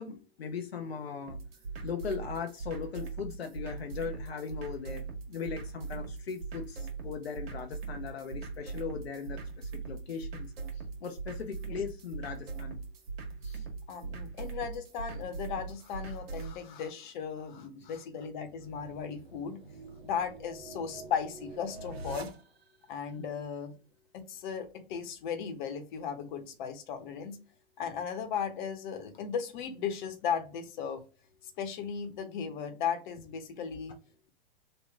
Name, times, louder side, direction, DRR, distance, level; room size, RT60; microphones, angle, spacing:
voice 1, 0.0-1.4 1.8-10.5 11.0-12.8 13.4-13.7, left 6 dB, 80° left, 5 dB, 0.7 m, -39 dB
sound 1, 1.3-16.5, right 4 dB, 75° right, 1.5 m, -41 dB
voice 2, 13.9-19.6 20.0-22.3 22.9-23.7 24.1-27.4 27.8-31.0 31.4-34.0, left 7 dB, 50° left, 7 dB, 1.1 m, -36 dB
sound 2, 18.3-22.9, right 3 dB, 90° right, 0.9 m, -46 dB
3.2 x 2.9 x 3.5 m, 0.34 s
hypercardioid pair, 110°, 30 cm